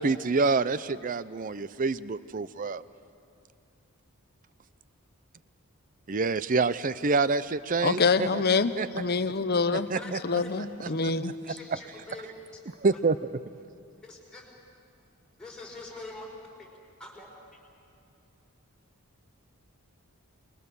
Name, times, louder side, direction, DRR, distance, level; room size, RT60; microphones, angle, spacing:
voice 1, 0.0-2.8 6.1-8.4 8.8-8.9 9.7-10.2 11.0-11.1 11.5-11.6 12.8-13.2, right 4 dB, 35° right, 16 dB, 0.5 m, -27 dB
voice 2, 7.8-11.3, left 4 dB, 45° left, 12 dB, 0.8 m, -26 dB
voice 3, 10.0-10.7 11.5-12.3 12.9-13.0 14.0-14.4 15.4-16.3 16.6-16.7 17.0-17.3, left 2 dB, 5° left, -3 dB, 4.8 m, -44 dB
29.5 x 21.0 x 6.9 m, 2.5 s
head